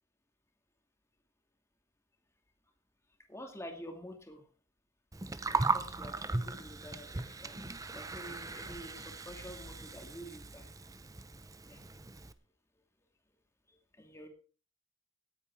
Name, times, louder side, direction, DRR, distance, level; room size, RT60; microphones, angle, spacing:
voice 1, 3.3-4.4 5.5-10.7 11.7-11.8 13.7-14.3, equal, 15° left, 3 dB, 2.4 m, -48 dB
Gurgling, 5.1-12.3, right 3 dB, 15° right, 0.7 m, -38 dB
17.5 x 8.4 x 4.6 m, 0.38 s
head